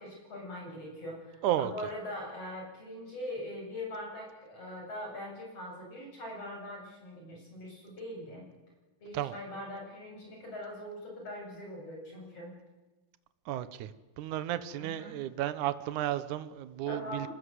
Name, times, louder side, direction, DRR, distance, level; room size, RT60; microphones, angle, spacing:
voice 1, 0.0-8.4 9.0-12.5 14.8-15.2 16.9-17.3, left 1 dB, 35° left, -1 dB, 9.0 m, -42 dB
voice 2, 13.5-13.9 14.2-17.3, right 12 dB, 75° right, 14 dB, 1.8 m, -33 dB
25.0 x 21.0 x 8.0 m, 1.1 s
omnidirectional pair, 4.8 m